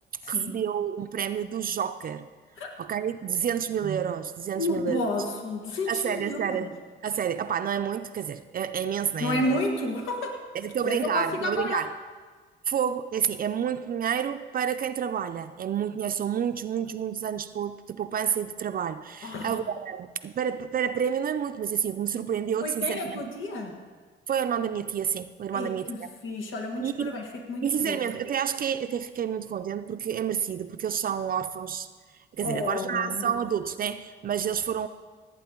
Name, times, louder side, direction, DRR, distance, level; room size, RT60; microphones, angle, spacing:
voice 1, 0.2-2.3 2.8-5.0 5.9-6.8 7.0-9.6 10.5-11.9 12.7-23.2 24.3-26.1 26.8-27.2 27.6-31.9 32.3-34.9, right 8 dB, 45° right, 9 dB, 0.5 m, -29 dB
voice 2, 4.5-6.7 9.2-10.4 10.8-11.8 19.2-19.7 22.6-23.7 25.5-26.0 26.2-28.0 32.4-33.3, left 2 dB, 80° left, 2 dB, 1.5 m, -31 dB
17.5 x 8.7 x 3.7 m, 1.5 s
cardioid pair, 90°, 20 cm